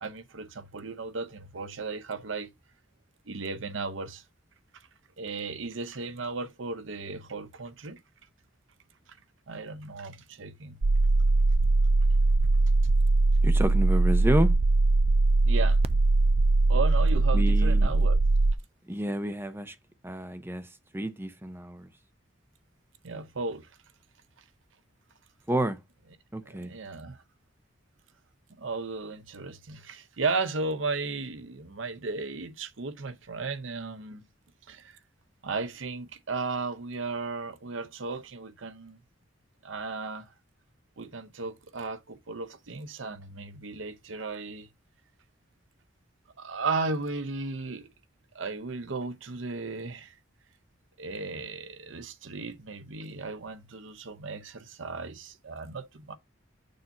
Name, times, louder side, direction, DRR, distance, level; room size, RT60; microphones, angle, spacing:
voice 1, 0.0-2.5 3.3-4.2 5.2-8.0 9.5-10.8 15.4-15.8 16.7-18.2 23.0-23.7 26.5-27.2 28.6-34.2 34.7-35.0 35.4-39.0 39.6-40.3 41.0-44.7 46.4-47.9 48.3-50.1 51.0-56.2, right 3 dB, 85° right, 0.8 m, -35 dB
sound 1, 10.8-18.5, right 2 dB, 30° right, 0.3 m, -21 dB
voice 2, 13.4-14.5 17.3-17.9 18.9-19.8 20.0-21.9 25.5-25.8 26.3-26.7, right 1 dB, 10° right, 0.7 m, -30 dB
6.5 x 2.7 x 5.6 m
head